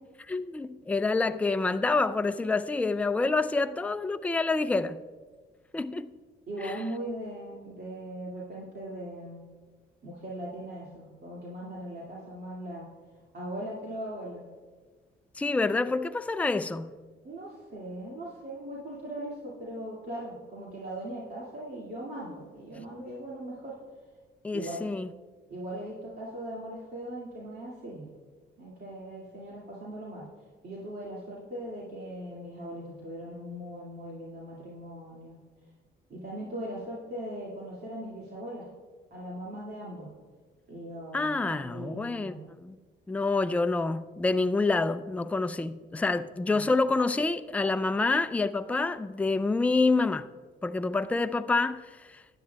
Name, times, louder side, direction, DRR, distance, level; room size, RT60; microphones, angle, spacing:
voice 1, 0.3-5.0 5.7-6.1 6.6-6.7 15.4-17.0 24.4-25.1 41.1-42.3 42.6-42.8 43.1-50.3 50.6-51.8 52.1-52.2, left 3 dB, 5° left, 0.3 m, -27 dB
voice 2, 6.5-9.4 10.0-12.9 13.3-14.4 15.7-15.8 17.2-23.7 24.5-24.8 25.5-28.1 28.6-30.3 30.6-35.4 36.1-38.7 39.1-40.1 40.7-42.4 46.4-46.7, right 1 dB, 55° right, 2.3 m, -39 dB
15.5 x 9.9 x 2.3 m
cardioid pair, 90°, 20 cm